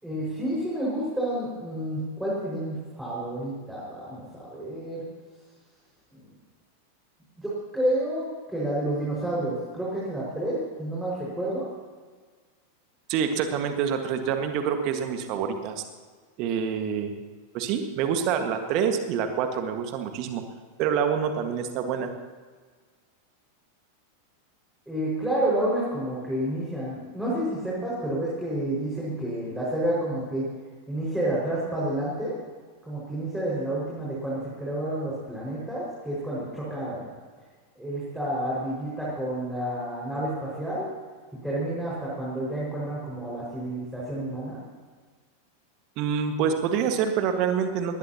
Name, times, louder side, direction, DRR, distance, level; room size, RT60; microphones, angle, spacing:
voice 1, 0.0-5.0 6.1-6.2 7.4-8.2 8.5-11.7 24.9-30.5 30.9-32.3 32.8-37.1 37.8-40.9 41.4-44.6, right 1 dB, 5° right, -7 dB, 5.4 m, -29 dB
voice 2, 13.1-15.8 16.4-17.1 17.5-20.4 20.8-22.1 46.0-48.0, right 7 dB, 40° right, 6 dB, 1.7 m, -26 dB
21.0 x 19.5 x 2.9 m, 1.5 s
figure-of-eight pair, 90°, 0 cm